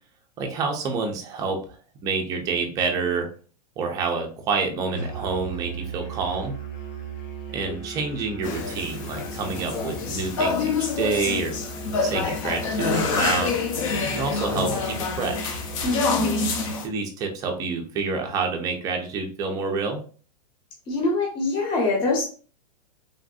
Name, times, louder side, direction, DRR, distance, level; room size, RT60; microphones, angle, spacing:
voice 1, 0.4-3.3 3.8-6.5 7.5-11.6 12.0-13.6 14.1-15.6 16.8-20.0, right 4 dB, 15° right, 3 dB, 0.5 m, -28 dB
Musical instrument, 4.9-16.8, right 4 dB, 90° left, 1.1 m, -38 dB
sound 1, 8.4-16.9, left 5 dB, 50° left, 0.6 m, -27 dB
voice 2, 15.8-16.6 20.9-22.2, left 2 dB, 25° left, -1 dB, 0.9 m, -25 dB
3.4 x 2.5 x 2.3 m, 0.39 s
supercardioid pair, 160°, 21 cm